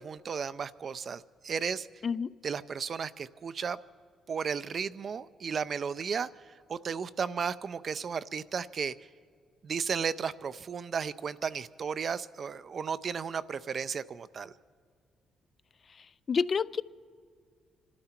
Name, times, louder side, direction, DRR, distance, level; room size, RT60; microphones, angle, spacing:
voice 1, 0.0-1.9 2.4-3.8 4.3-8.9 9.6-14.5, right 6 dB, 50° right, 0.4 m, -34 dB
voice 2, 16.0-16.8, left 6 dB, 45° left, 0.3 m, -29 dB
25.5 x 12.5 x 4.4 m
cardioid pair, 90°, 0 cm